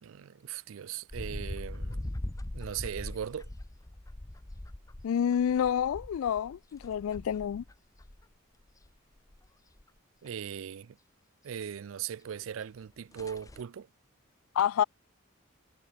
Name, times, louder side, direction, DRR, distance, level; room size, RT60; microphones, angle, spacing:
voice 1, 0.0-2.0 2.5-3.5 10.2-11.0 11.4-13.9, right 8 dB, 75° right, 0.4 m, -39 dB
sound 1, 1.1-8.2 8.6-9.5 9.8-9.9 10.3-10.4 12.4-12.5 12.8-12.9 13.1-13.6, left 1 dB, 15° left, 0.5 m, -41 dB
voice 2, 5.0-7.6 14.6-14.8, left 8 dB, 85° left, 0.3 m, -28 dB
head